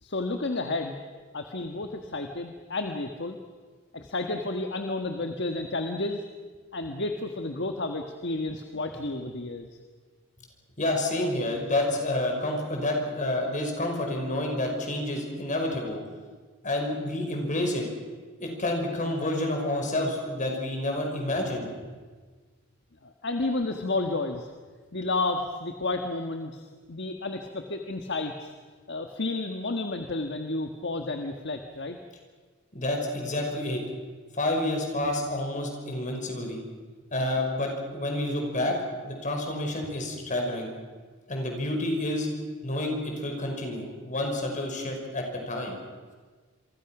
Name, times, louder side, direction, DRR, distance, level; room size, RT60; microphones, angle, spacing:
voice 1, 0.0-1.0 1.3-3.4 3.9-6.2 6.7-9.7 23.0-24.5 24.9-28.5 28.9-32.0, left 2 dB, 55° left, 5 dB, 1.5 m, -31 dB
voice 2, 10.8-16.0 16.6-17.9 18.4-21.7 32.7-33.8 34.3-36.6 37.1-38.8 39.0-40.7 41.3-42.3 42.6-45.8, left 1 dB, 40° left, 2 dB, 5.4 m, -29 dB
27.5 x 23.5 x 6.1 m, 1.5 s
head